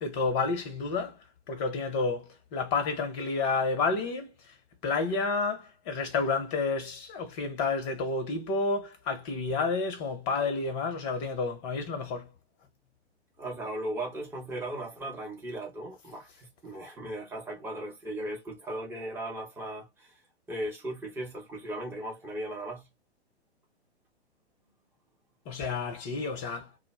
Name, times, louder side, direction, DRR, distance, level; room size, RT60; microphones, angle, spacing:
voice 1, 0.0-1.2 1.5-4.5 4.8-12.3 25.5-26.8, left 4 dB, 30° left, 0.8 m, -30 dB
voice 2, 13.4-20.1 20.5-22.9, right 1 dB, 5° right, 0.9 m, -37 dB
2.3 x 2.1 x 3.2 m
figure-of-eight pair, 115°, 33 cm